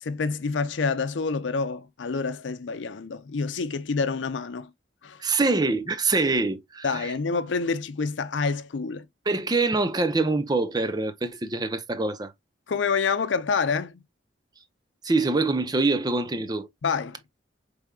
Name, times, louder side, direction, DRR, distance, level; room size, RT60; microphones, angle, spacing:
voice 1, 0.0-4.7 5.0-5.2 6.8-9.1 12.7-14.0 16.8-17.2, left 4 dB, 90° left, 0.5 m, -27 dB
voice 2, 5.2-7.1 9.3-12.3 15.0-16.7, right 3 dB, 20° right, 0.5 m, -25 dB
4.9 x 3.3 x 2.2 m
head